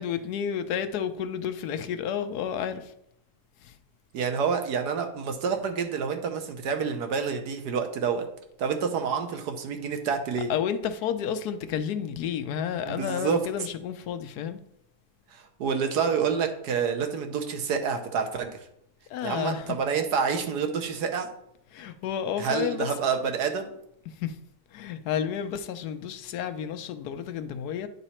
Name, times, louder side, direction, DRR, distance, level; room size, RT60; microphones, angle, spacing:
voice 1, 0.0-2.9 3.6-3.8 10.4-14.6 19.1-19.8 21.7-23.0 24.0-24.4 24.7-27.9, left 8 dB, 75° left, 1.1 m, -31 dB
voice 2, 4.1-8.3 8.6-10.5 12.9-13.4 15.3-18.6 19.2-21.3 22.4-23.7, right 6 dB, 80° right, 1.4 m, -28 dB
9.7 x 4.0 x 4.3 m
omnidirectional pair, 1.7 m